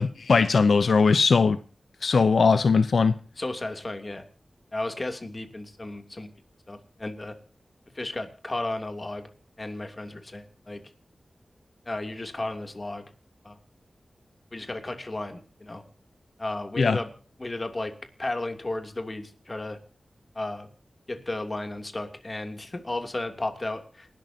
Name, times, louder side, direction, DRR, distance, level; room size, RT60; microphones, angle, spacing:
voice 1, 0.0-1.6 2.0-3.1 16.8-17.0, left 4 dB, 85° left, 0.8 m, -20 dB
voice 2, 3.4-4.2 4.7-6.3 6.7-7.4 7.9-9.3 9.6-10.8 11.8-13.1 13.4-13.6 14.5-15.8 16.4-17.1 17.4-17.9 18.2-19.8 20.3-20.7 21.1-24.1, left 2 dB, 35° left, 3.0 m, -34 dB
28.5 x 12.5 x 2.9 m
wide cardioid pair, 75°, 0 cm